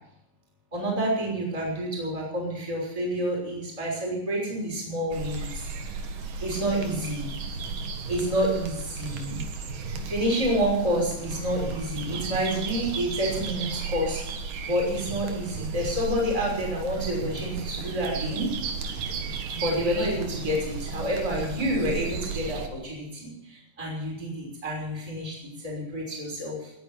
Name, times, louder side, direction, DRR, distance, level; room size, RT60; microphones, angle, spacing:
voice 1, 0.7-5.7 6.4-7.3 8.1-9.4 10.0-14.2 14.6-18.5 19.5-26.7, equal, 10° right, -2 dB, 5.7 m, -28 dB
sound 1, 5.1-22.7, right 4 dB, 65° right, 3.0 m, -34 dB
19.5 x 9.9 x 7.2 m, 0.88 s
omnidirectional pair, 4.4 m